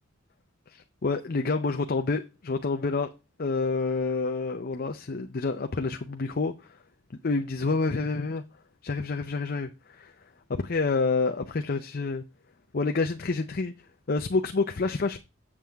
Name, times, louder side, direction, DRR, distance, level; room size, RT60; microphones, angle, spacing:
voice 1, 0.7-3.1 3.4-6.5 7.2-8.4 8.8-9.7 10.0-10.1 10.6-12.2 12.7-13.7 14.1-15.2, left 3 dB, 45° left, 0.6 m, -28 dB
7.6 x 7.5 x 3.4 m
head